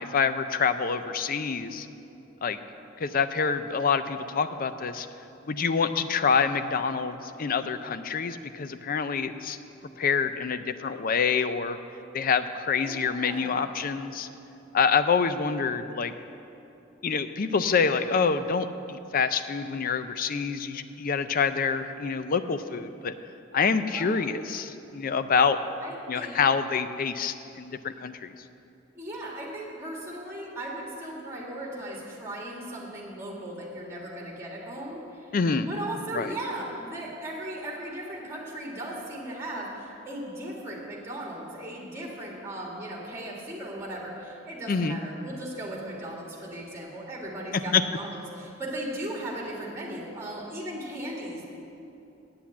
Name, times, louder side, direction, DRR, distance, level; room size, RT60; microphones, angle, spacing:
voice 1, 0.0-1.9 2.4-2.6 3.0-5.1 5.5-9.6 10.0-11.8 12.1-14.3 14.7-16.1 17.0-23.1 23.5-25.6 26.1-28.3 35.3-35.7 36.1-36.3 44.7-45.0 47.7-47.8, left 5 dB, 45° left, 11 dB, 0.4 m, -26 dB
voice 2, 12.7-13.8 23.9-24.4 25.8-26.4 29.0-35.4 35.7-51.4, right 1 dB, 15° right, -2 dB, 1.9 m, -37 dB
8.6 x 8.0 x 8.5 m, 2.8 s
head